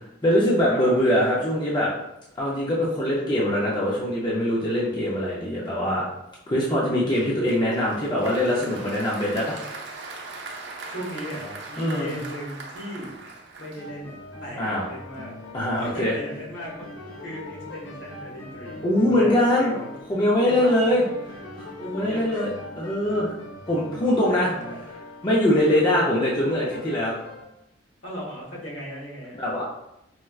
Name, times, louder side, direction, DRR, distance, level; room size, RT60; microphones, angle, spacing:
voice 1, 0.2-1.9 2.4-6.0 6.5-9.6 11.8-12.2 14.6-14.9 15.5-16.1 18.8-19.7 20.1-21.0 21.8-23.3 23.7-24.5 25.2-27.1 29.4-29.6, left 1 dB, 25° left, -6 dB, 0.5 m, -22 dB
Applause, 7.1-14.3, right 3 dB, 65° right, 0.5 m, -40 dB
voice 2, 10.9-13.1 13.6-14.1 14.4-15.3 15.8-16.9 17.2-18.8 19.2-19.9 20.4-20.8 21.9-22.6 24.3-24.8 28.0-29.4, equal, 70° left, -5 dB, 1.2 m, -37 dB
sound 1, 13.8-27.4, left 1 dB, 85° left, 0.9 m, -41 dB
4.3 x 2.2 x 2.3 m, 0.85 s
head